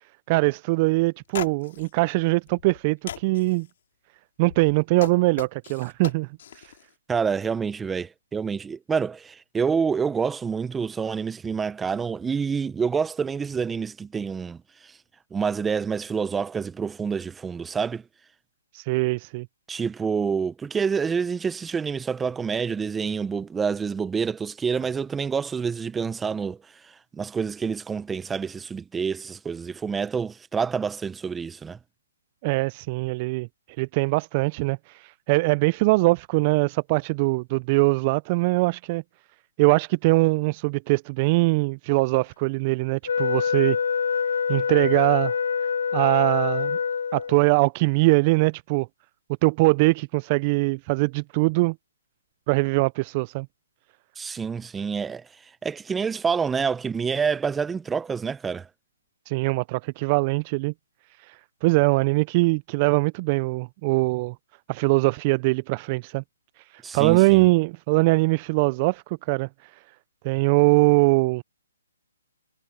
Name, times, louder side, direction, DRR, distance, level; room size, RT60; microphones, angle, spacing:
voice 1, 0.3-3.7 4.4-6.3 6.5-6.7 18.7-19.5 32.4-33.5 33.8-39.0 39.6-43.8 44.5-45.3 45.9-46.8 47.1-48.9 49.4-51.8 52.5-53.5 59.3-60.7 61.2-64.3 64.7-66.2 66.7-69.8 70.2-71.4, right 25 dB, 35° right, 0.4 m, -22 dB
sound 1, 1.0-1.1 1.3-1.9 2.5-2.8 3.1-3.6 4.5-6.8, left 10 dB, 55° left, 3.3 m, -38 dB
voice 2, 7.1-14.6 15.3-18.0 19.7-26.6 27.1-31.8 54.2-55.2 55.6-58.7 66.8-67.5, right 6 dB, 10° right, 1.0 m, -27 dB
Wind instrument woodwind instrument, 43.1-47.4, left 6 dB, 70° left, 2.1 m, -25 dB
hypercardioid pair, 140°, 0 cm